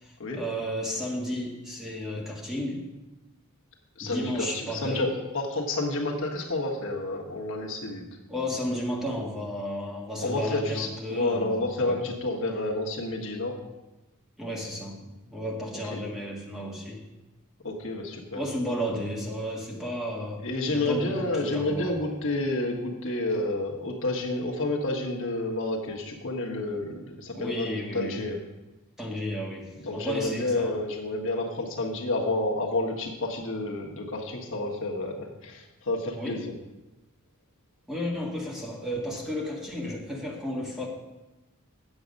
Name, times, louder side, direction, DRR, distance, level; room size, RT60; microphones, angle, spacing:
voice 1, 0.0-2.8 4.0-5.1 8.3-12.0 14.4-17.1 18.3-22.2 27.3-28.3 29.0-30.8 36.1-36.4 37.9-40.9, equal, ahead, -3 dB, 1.7 m, -33 dB
voice 2, 4.0-8.0 10.2-13.5 15.8-16.0 17.6-18.4 20.4-28.4 29.7-36.5, left 2 dB, 65° left, 0 dB, 1.4 m, -30 dB
8.8 x 7.3 x 5.3 m, 1.1 s
head